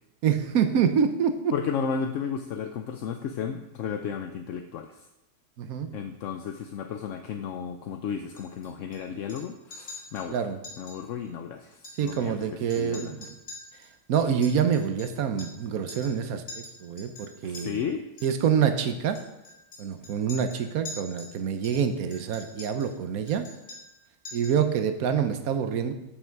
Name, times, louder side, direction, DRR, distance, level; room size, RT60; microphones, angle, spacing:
voice 1, 0.2-1.5 5.6-5.9 10.3-10.6 12.0-13.3 14.1-17.8 18.2-19.2 19.8-23.4 24.3-25.9, right 7 dB, 65° right, 8 dB, 1.3 m, -26 dB
voice 2, 1.5-5.0 5.9-10.5 10.8-13.2 17.4-18.0, left 7 dB, 65° left, 6 dB, 0.9 m, -33 dB
Chink clink, 8.4-9.0 9.3-9.5 9.7-10.3 10.6-11.0 11.3-11.4 11.7-12.4 12.7-15.6 15.9-16.2 16.5-17.6 18.2-18.5 19.2-21.4 21.6-22.9 23.3-24.0 24.3-24.6, left 2 dB, 30° left, 3.6 m, -44 dB
13.0 x 6.0 x 4.6 m, 0.93 s
omnidirectional pair, 1.7 m